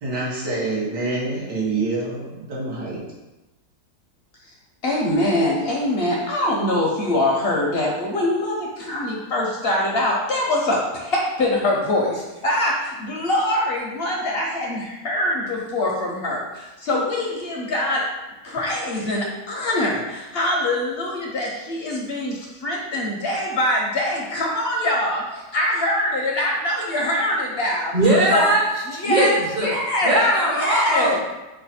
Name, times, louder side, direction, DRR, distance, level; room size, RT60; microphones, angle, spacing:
voice 1, 0.0-3.0, right 3 dB, 85° right, -6 dB, 1.8 m, -26 dB
voice 2, 4.8-18.1 18.4-27.9 28.3-28.5 28.9-30.2 30.5-31.2, left 1 dB, 60° left, -2 dB, 0.6 m, -23 dB
voice 3, 27.9-29.7 30.0-31.2, right 1 dB, 40° right, -4 dB, 0.6 m, -20 dB
5.5 x 2.2 x 4.1 m, 1.1 s
omnidirectional pair, 1.7 m